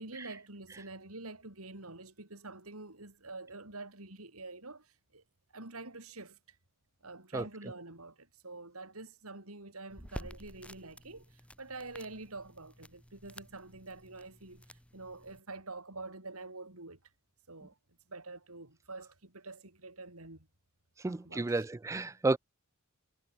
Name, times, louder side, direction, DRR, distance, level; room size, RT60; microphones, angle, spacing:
voice 1, 0.0-4.9 5.1-5.2 5.5-6.4 7.0-11.3 11.6-17.0 17.5-17.7 18.1-20.5 21.0-21.7, right 3 dB, 80° right, 5.3 m, -46 dB
sound 1, 9.9-15.4, equal, 5° left, 6.2 m, -51 dB
voice 2, 21.0-22.4, right 3 dB, 15° right, 0.3 m, -31 dB
head